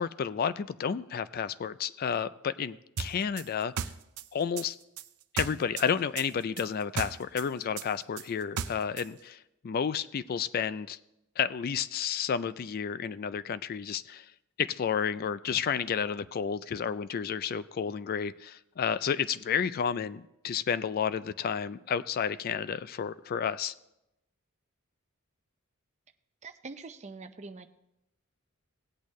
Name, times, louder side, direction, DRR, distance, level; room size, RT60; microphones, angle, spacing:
voice 1, 0.0-3.9 4.3-4.8 5.3-11.0 11.4-14.3 14.6-23.7, left 7 dB, 40° left, 15 dB, 0.3 m, -31 dB
sound 1, 3.0-5.9 6.2-9.1, right 7 dB, 90° right, 0.5 m, -36 dB
voice 2, 26.4-27.7, right 3 dB, 30° right, 8 dB, 0.5 m, -44 dB
18.0 x 8.4 x 3.1 m, 0.88 s
head